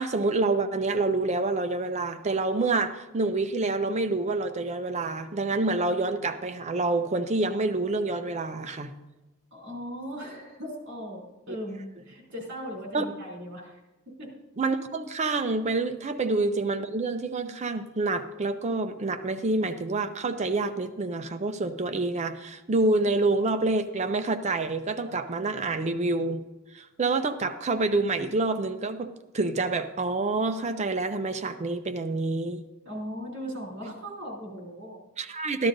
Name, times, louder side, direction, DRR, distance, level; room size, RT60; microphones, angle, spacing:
voice 1, 0.0-8.9 11.5-11.6 12.9-13.0 14.6-26.4 26.7-32.6 35.2-35.7, right 3 dB, 30° right, 9 dB, 0.5 m, -27 dB
voice 2, 9.5-13.8 14.0-14.3 32.8-35.0, equal, 55° right, -1 dB, 3.2 m, -38 dB
14.0 x 11.5 x 2.6 m, 1.1 s
head